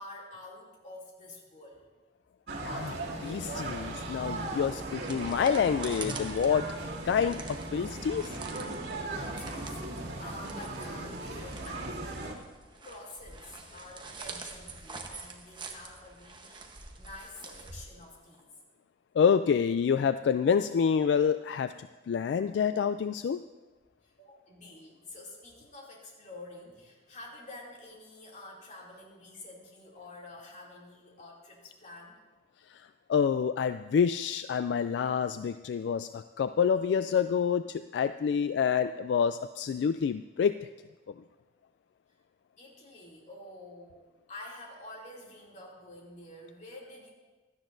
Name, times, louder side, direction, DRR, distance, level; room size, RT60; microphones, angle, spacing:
voice 1, 0.0-1.9 9.1-12.4 12.8-18.5 24.0-32.2 42.6-44.0 44.3-47.1, left 2 dB, 45° left, -3 dB, 2.7 m, -48 dB
sound 1, 2.5-12.3, right 2 dB, 80° right, 2.2 m, -37 dB
voice 2, 2.6-3.0 3.2-6.7 7.0-8.4 19.1-21.7 22.1-23.4 32.7-40.7 41.1-41.2, left 7 dB, 75° left, 11 dB, 0.3 m, -27 dB
sound 2, 4.8-18.4, right 4 dB, 25° right, 1.0 m, -46 dB
16.5 x 12.5 x 2.6 m, 1.2 s
head